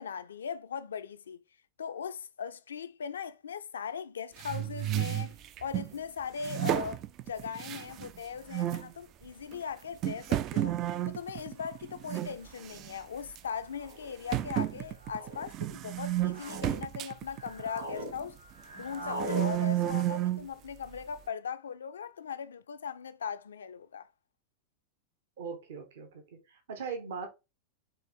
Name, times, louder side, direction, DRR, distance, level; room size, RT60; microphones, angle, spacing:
voice 1, 0.0-1.4 1.8-10.7 11.1-18.4 18.7-24.1, left 7 dB, 65° left, 0.4 m, -39 dB
sound 1, 4.4-5.9 6.4-8.2 8.5-8.9 9.5-9.6 10.0-12.3 12.6-13.0 13.3-13.4 14.3-18.3 18.8-20.5, right 13 dB, 35° right, 0.3 m, -32 dB
sound 2, 11.4-11.5 12.5-12.8 13.7-14.1 15.0-15.4 16.0-16.8 17.2-18.1 18.4-19.5, equal, 85° right, 1.3 m, -41 dB
voice 2, 25.4-27.3, right 5 dB, 55° right, 1.0 m, -40 dB
4.4 x 3.1 x 3.5 m
figure-of-eight pair, 90°, 0 cm